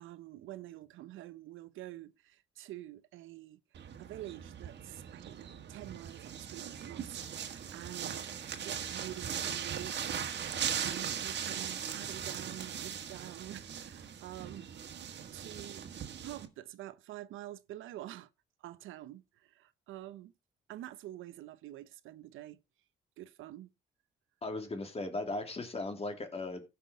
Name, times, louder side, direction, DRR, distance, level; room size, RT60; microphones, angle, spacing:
voice 1, 0.0-8.3 8.6-10.2 10.5-14.7 15.3-15.9 16.2-18.3 18.6-20.3 20.7-22.6 23.2-23.7, right 14 dB, 85° right, 0.7 m, -47 dB
sound 1, 3.7-16.5, right 8 dB, 60° right, 1.7 m, -39 dB
voice 2, 24.4-26.6, left 2 dB, 30° left, 2.7 m, -37 dB
15.5 x 5.9 x 3.5 m
cardioid pair, 90°, 20 cm